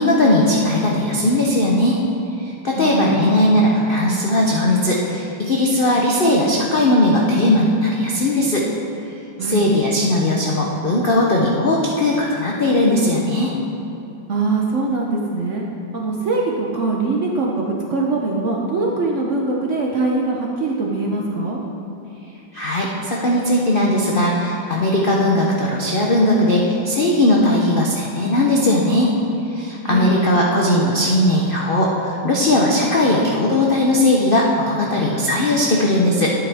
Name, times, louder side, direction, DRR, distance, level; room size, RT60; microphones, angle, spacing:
voice 1, 0.0-2.0 2.4-8.7 9.4-13.5 22.5-29.1 29.5-36.3, left 1 dB, 80° left, -2 dB, 0.4 m, -18 dB
voice 2, 2.8-3.3 9.4-9.6 14.3-15.6 15.9-21.6 29.8-30.2, right 3 dB, 60° right, -1 dB, 0.8 m, -22 dB
10.5 x 8.5 x 3.5 m, 2.9 s
omnidirectional pair, 2.1 m